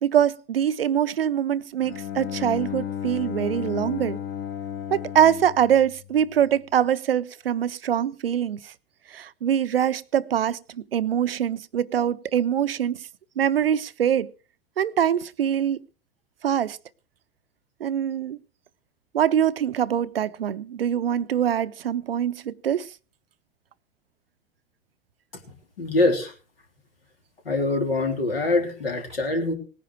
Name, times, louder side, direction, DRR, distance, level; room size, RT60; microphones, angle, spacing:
voice 1, 0.0-4.2 4.9-8.7 9.1-13.0 13.4-14.3 14.8-15.8 16.4-16.8 17.8-18.4 19.1-22.9, right 9 dB, 75° right, 0.6 m, -23 dB
Bowed string instrument, 1.8-6.6, left 9 dB, 35° left, 1.4 m, -34 dB
voice 2, 25.8-26.3 27.5-29.5, left 2 dB, 75° left, 3.6 m, -24 dB
18.0 x 10.5 x 4.8 m
figure-of-eight pair, 85°, 29 cm